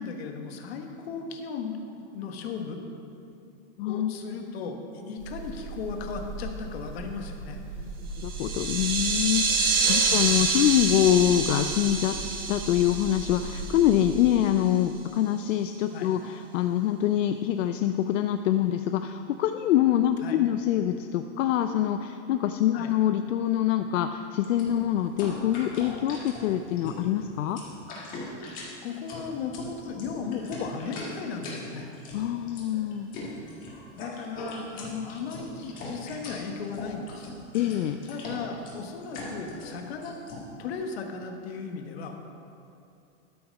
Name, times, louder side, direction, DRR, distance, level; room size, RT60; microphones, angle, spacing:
voice 1, 0.0-2.8 3.8-7.6 10.1-10.5 15.9-16.1 20.2-20.4 22.7-23.0 28.8-31.9 33.9-37.3 38.1-40.2 40.6-42.2, left 5 dB, 55° left, 4 dB, 1.2 m, -36 dB
voice 2, 3.8-4.1 8.2-12.2 12.5-27.6 32.1-33.1 37.5-38.0, left 11 dB, 75° left, 8 dB, 0.5 m, -25 dB
sound 1, 5.2-14.3, right 3 dB, 75° right, 1.8 m, -39 dB
sound 2, 8.2-14.2, right 4 dB, 20° right, 0.3 m, -27 dB
sound 3, 24.4-40.4, left 2 dB, 20° left, 1.5 m, -40 dB
13.0 x 5.8 x 5.3 m, 2.6 s
supercardioid pair, 175°, 38 cm